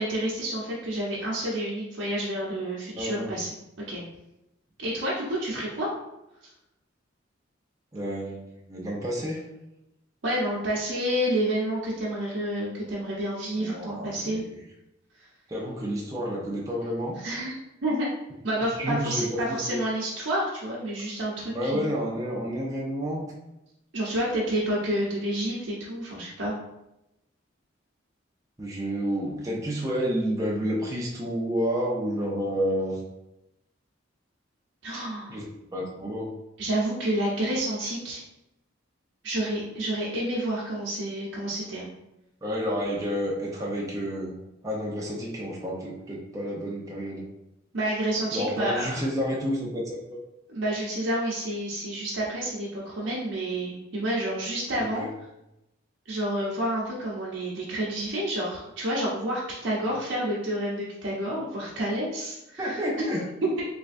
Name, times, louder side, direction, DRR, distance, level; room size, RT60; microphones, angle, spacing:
voice 1, 0.0-3.5 3.9-4.0 4.8-5.9 10.2-14.4 17.2-17.5 17.8-18.1 18.4-21.9 23.9-26.5 34.8-35.4 36.6-38.2 39.2-41.9 47.7-49.0 50.5-55.0 56.1-63.2, right 1 dB, 70° right, -6 dB, 0.7 m, -29 dB
voice 2, 3.0-3.4 7.9-9.4 13.6-14.4 15.5-17.2 18.8-19.8 21.4-23.3 28.6-33.0 35.3-36.3 42.4-44.3 44.6-47.2 48.3-50.2 54.7-55.1 62.6-63.3, equal, 15° right, -4 dB, 0.5 m, -30 dB
3.3 x 3.2 x 2.5 m, 0.90 s
head